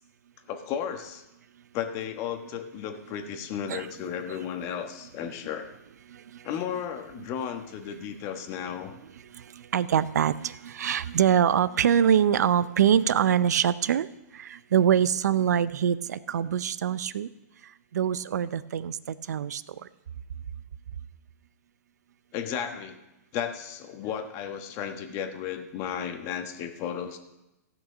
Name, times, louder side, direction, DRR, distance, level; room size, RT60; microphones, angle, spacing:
voice 1, 0.5-1.2 1.7-5.7 6.4-8.9 22.3-23.0 23.3-27.2, left 8 dB, 35° left, 6 dB, 1.3 m, -34 dB
voice 2, 9.7-14.1 14.4-17.3 17.9-19.0 19.3-19.6, right 9 dB, 75° right, 17 dB, 0.6 m, -24 dB
16.0 x 6.1 x 6.2 m, 0.95 s
hypercardioid pair, 140°, 9 cm